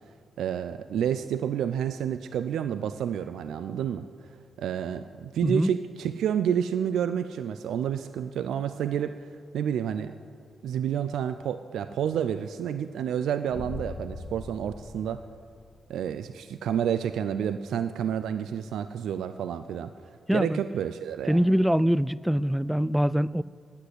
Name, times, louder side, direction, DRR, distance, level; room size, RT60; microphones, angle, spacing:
voice 1, 0.4-4.1 4.6-10.1 10.6-15.2 15.9-19.9 20.3-21.4, right 9 dB, 80° right, 0.4 m, -29 dB
sound 1, 13.5-16.1, left 3 dB, 45° left, 1.7 m, -41 dB
voice 2, 20.3-20.6 21.3-23.4, equal, 5° right, 0.3 m, -23 dB
9.8 x 8.4 x 7.9 m
supercardioid pair, 50°, 0 cm